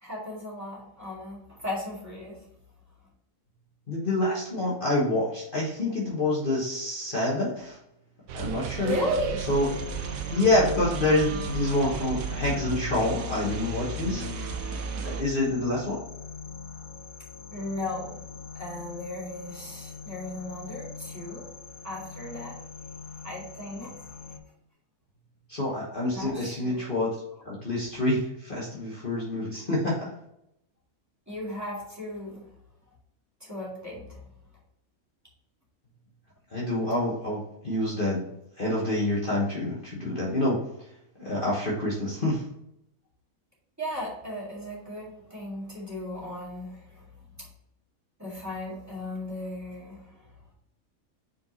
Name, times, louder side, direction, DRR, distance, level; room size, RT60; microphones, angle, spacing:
voice 1, 0.0-2.4 8.5-9.4 17.5-18.2 18.5-21.5 21.8-22.6 23.2-24.0 26.1-26.8 31.3-32.5 33.4-34.2 43.8-47.0 47.4-47.5 48.2-50.3, left 1 dB, 10° right, -7 dB, 2.2 m, -36 dB
voice 2, 3.9-7.8 8.3-8.9 9.5-9.7 10.3-14.2 15.0-16.0 25.5-27.1 27.4-30.1 36.5-38.2 38.6-40.6 41.2-42.4, left 1 dB, 40° left, -5 dB, 1.3 m, -27 dB
sound 1, 8.3-15.2, right 5 dB, 75° right, 1.0 m, -34 dB
sound 2, 9.4-24.4, left 5 dB, 75° left, 1.3 m, -43 dB
5.2 x 4.6 x 4.0 m, 0.79 s
omnidirectional pair, 1.5 m